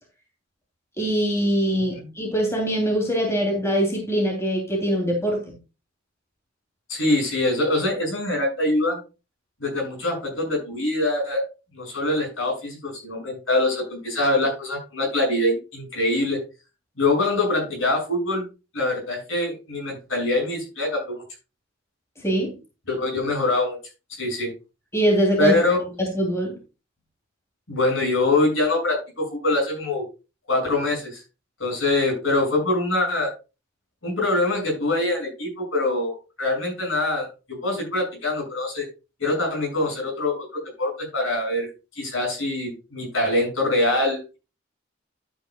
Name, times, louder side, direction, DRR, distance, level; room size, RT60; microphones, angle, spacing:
voice 1, 1.0-5.6 22.2-22.5 24.9-25.5 26.0-26.6, equal, 15° left, 1 dB, 2.9 m, -23 dB
voice 2, 6.9-9.0 9.6-11.4 11.7-16.4 17.0-18.5 18.7-21.2 22.9-23.8 24.2-24.5 25.4-25.8 27.7-30.1 30.5-31.2 31.6-33.3 34.0-38.9 39.2-40.5 40.8-41.7 41.9-44.4, left 2 dB, 70° left, 1 dB, 6.6 m, -24 dB
12.0 x 9.1 x 2.3 m, 0.30 s
head